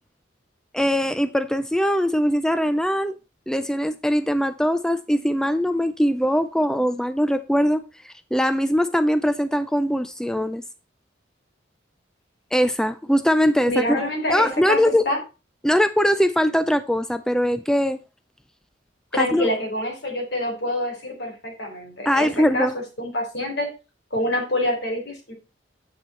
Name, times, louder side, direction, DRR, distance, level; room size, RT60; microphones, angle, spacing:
voice 1, 0.7-3.1 3.5-10.6 12.5-14.0 14.3-15.0 15.6-18.0 19.1-19.5 22.1-22.7, equal, 5° left, 0.4 m, -21 dB
voice 2, 13.7-15.2 19.1-22.7 23.0-23.7 24.1-25.3, left 1 dB, 60° left, 4.0 m, -26 dB
9.0 x 7.8 x 4.2 m
head